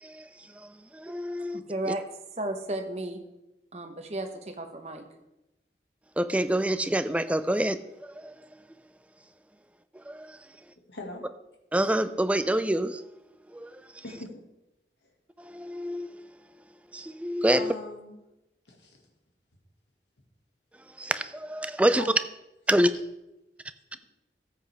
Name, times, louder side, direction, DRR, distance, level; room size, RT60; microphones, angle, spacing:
voice 1, 1.0-1.6 1.9-2.0 6.2-7.8 8.2-8.3 10.1-10.2 11.7-13.0 13.5-13.7 15.5-16.1 16.9-17.7 21.0-22.0 22.7-22.9, right 1 dB, 10° right, 12 dB, 0.3 m, -26 dB
voice 2, 1.5-2.0 2.4-3.2 3.7-5.0, right 1 dB, 35° right, 5 dB, 1.0 m, -33 dB
voice 3, 10.9-11.3 14.0-14.5 17.5-18.2 18.7-19.0 22.0-22.1, left 2 dB, 85° left, 1 dB, 2.0 m, -40 dB
13.5 x 7.7 x 3.5 m, 0.92 s
head